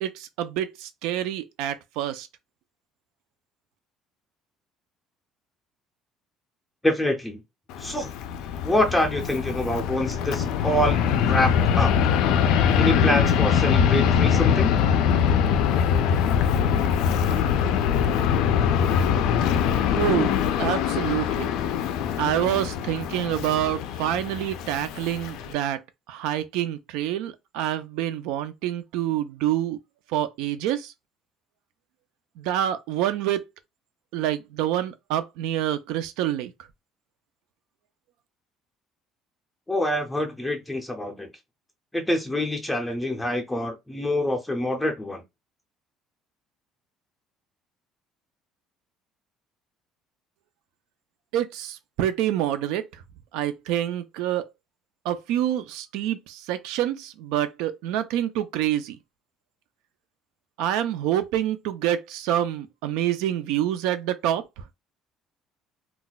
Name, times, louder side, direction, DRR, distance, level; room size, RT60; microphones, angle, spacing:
voice 1, 0.0-2.3 20.0-20.3 20.6-21.5 22.2-25.8 26.1-29.8 30.1-30.9 32.4-33.4 34.1-36.5 51.3-52.8 53.3-54.4 55.0-59.0 60.6-64.4, right 11 dB, 85° right, 0.4 m, -27 dB
voice 2, 6.8-7.4 7.8-8.1 8.6-11.9 12.7-14.8 39.7-41.3 41.9-45.2, left 1 dB, 5° left, 0.5 m, -26 dB
Fixed-wing aircraft airplane, 7.7-25.5, left 8 dB, 70° left, 0.3 m, -23 dB
2.3 x 2.2 x 3.9 m
cardioid pair, 180°, 0 cm